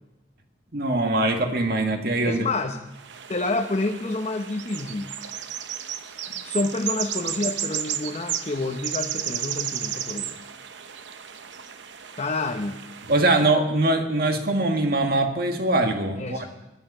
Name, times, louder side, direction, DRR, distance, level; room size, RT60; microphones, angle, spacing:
voice 1, 0.7-2.5 13.1-16.5, right 2 dB, 55° right, 4 dB, 1.8 m, -22 dB
voice 2, 2.2-2.8 3.3-5.1 6.4-10.4 12.2-12.8 16.2-16.4, left 2 dB, 35° left, 3 dB, 0.8 m, -28 dB
sound 1, 2.9-13.5, right 10 dB, 85° right, 0.8 m, -33 dB
20.5 x 11.0 x 5.5 m, 1.0 s
head